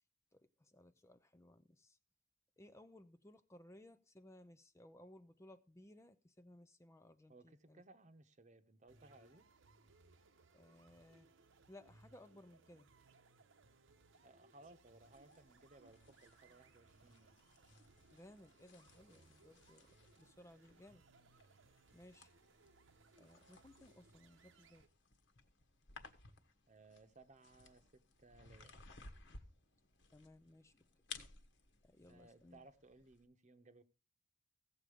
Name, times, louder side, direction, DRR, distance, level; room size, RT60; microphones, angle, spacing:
voice 1, 0.3-2.0 2.6-7.8 10.5-11.3 11.7-12.9 18.1-21.0 21.9-22.3 23.2-24.8 30.1-30.8 31.8-32.6, left 1 dB, 15° left, 0.5 m, -61 dB
voice 2, 7.3-9.5 14.2-17.4 26.7-28.7 32.1-33.8, right 2 dB, 35° right, 1.0 m, -63 dB
sound 1, 8.9-24.9, right 3 dB, 65° right, 1.0 m, -68 dB
sound 2, 15.0-33.3, left 5 dB, 60° left, 1.4 m, -60 dB
16.0 x 7.4 x 4.9 m
head